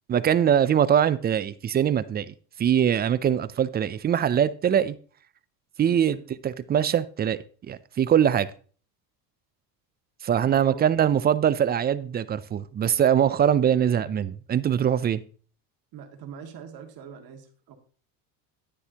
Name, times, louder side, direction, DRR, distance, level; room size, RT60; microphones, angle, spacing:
voice 1, 0.1-5.0 5.8-6.2 6.4-8.5 10.2-15.2, right 9 dB, 25° right, 0.4 m, -22 dB
voice 2, 10.4-11.2 15.9-17.7, right 7 dB, 50° right, 2.1 m, -43 dB
9.8 x 9.7 x 2.9 m
supercardioid pair, 105°, 46 cm